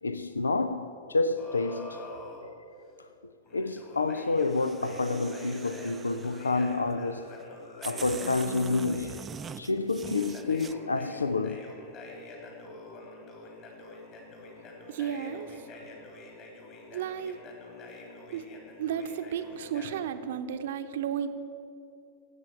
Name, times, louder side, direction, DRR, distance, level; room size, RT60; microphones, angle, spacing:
voice 1, 0.0-2.0 3.5-7.4 7.8-9.2 9.6-11.6, left 3 dB, 75° left, 0.5 m, -29 dB
sound 1, 1.4-2.4 3.5-9.1 10.0-20.0, left 2 dB, 40° left, 3.3 m, -47 dB
sound 2, 4.4-6.7 7.4-7.5 7.8-10.7, right 6 dB, 20° right, 0.5 m, -43 dB
voice 2, 14.9-15.5 16.9-17.4 18.3-18.4 18.8-21.3, right 9 dB, 55° right, 0.9 m, -33 dB
15.5 x 8.1 x 8.7 m
figure-of-eight pair, 90°, 0 cm